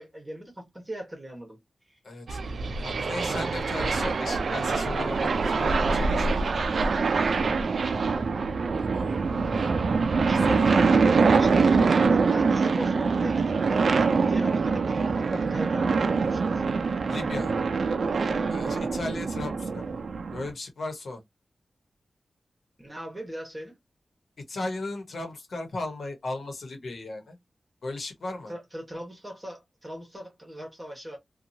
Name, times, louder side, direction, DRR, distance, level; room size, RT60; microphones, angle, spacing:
voice 1, 0.0-1.6 1.9-2.0 10.2-16.6 18.2-18.5 22.8-23.7 28.5-31.2, equal, 15° right, 1.1 m, -38 dB
voice 2, 2.0-2.4 2.8-6.6 10.3-10.8 17.1-17.5 18.5-19.9 20.3-21.2 24.5-27.4 27.8-28.5, left 2 dB, 75° left, 1.0 m, -36 dB
sound 1, 2.3-20.5, right 4 dB, 70° right, 0.3 m, -24 dB
2.8 x 2.3 x 2.7 m
wide cardioid pair, 115°, 0 cm